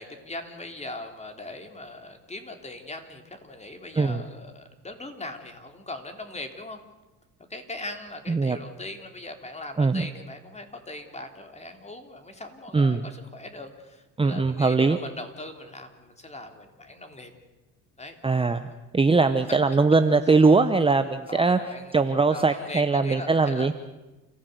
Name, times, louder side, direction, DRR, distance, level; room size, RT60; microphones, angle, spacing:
voice 1, 0.0-6.8 7.5-17.3 18.0-18.2 19.5-19.6 21.3-21.9 22.3-23.7, left 2 dB, 20° left, 5 dB, 3.5 m, -40 dB
voice 2, 12.7-13.0 14.2-15.0 18.2-21.6 21.9-23.7, right 4 dB, 15° right, 9 dB, 0.9 m, -21 dB
29.0 x 15.5 x 8.2 m, 1.1 s
cardioid pair, 100°, 34 cm